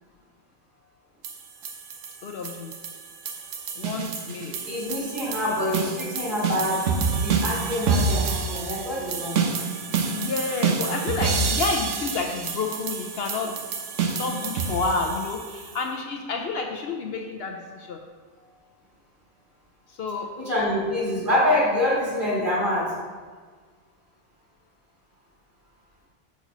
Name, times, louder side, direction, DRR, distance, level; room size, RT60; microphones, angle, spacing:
sound 1, 1.2-15.8, right 5 dB, 85° right, 1.1 m, -28 dB
voice 1, 2.2-2.8 3.8-4.6 10.1-18.0 19.9-20.3, left 4 dB, 65° left, 2 dB, 0.8 m, -30 dB
voice 2, 4.5-6.9 7.2-9.4 20.4-22.9, left 1 dB, 45° right, -7 dB, 2.6 m, -25 dB
5.8 x 4.2 x 6.0 m, 1.5 s
omnidirectional pair, 1.2 m